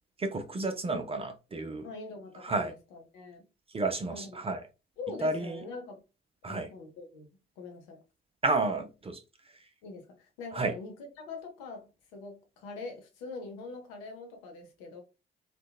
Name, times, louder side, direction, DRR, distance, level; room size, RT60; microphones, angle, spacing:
voice 1, 0.2-1.9 2.4-2.7 3.7-4.6 5.2-5.6 6.4-6.7 8.4-9.2 10.5-10.7, right 3 dB, 20° right, 0.4 m, -31 dB
voice 2, 1.8-3.5 4.1-4.4 5.0-6.0 6.5-7.3 7.6-8.0 9.8-15.0, left 3 dB, 70° left, 0.7 m, -43 dB
2.7 x 2.2 x 2.2 m
figure-of-eight pair, 45°, 31 cm